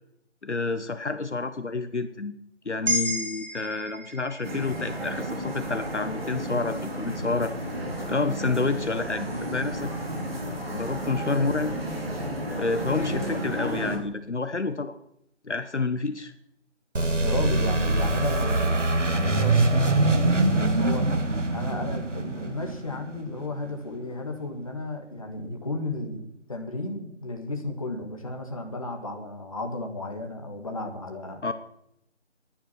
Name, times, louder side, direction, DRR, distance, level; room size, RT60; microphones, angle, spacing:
voice 1, 0.4-2.3 2.6-7.5 8.1-9.9 10.7-11.7 12.6-14.9 15.4-16.3 31.4-31.5, left 3 dB, 65° left, 10 dB, 1.2 m, -29 dB
sound 1, 2.9-7.1, equal, 35° right, 1.6 m, -34 dB
sound 2, 4.4-14.0, right 1 dB, 55° right, 5.1 m, -32 dB
voice 2, 12.9-13.6 17.2-19.8 20.1-31.4, left 2 dB, 30° left, 3 dB, 1.9 m, -34 dB
sound 3, 16.9-23.5, right 2 dB, 75° right, 2.2 m, -24 dB
18.5 x 10.0 x 5.9 m, 0.76 s
figure-of-eight pair, 170°, 37 cm